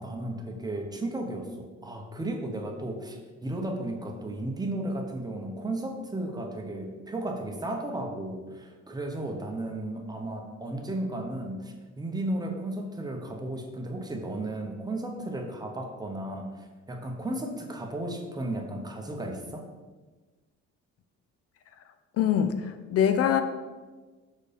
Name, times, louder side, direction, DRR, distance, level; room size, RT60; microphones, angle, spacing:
voice 1, 0.0-19.7, right 1 dB, 15° right, 2 dB, 0.7 m, -34 dB
voice 2, 22.2-23.4, left 9 dB, 55° left, 9 dB, 0.4 m, -24 dB
6.2 x 4.5 x 5.0 m, 1.3 s
cardioid pair, 160°, 30 cm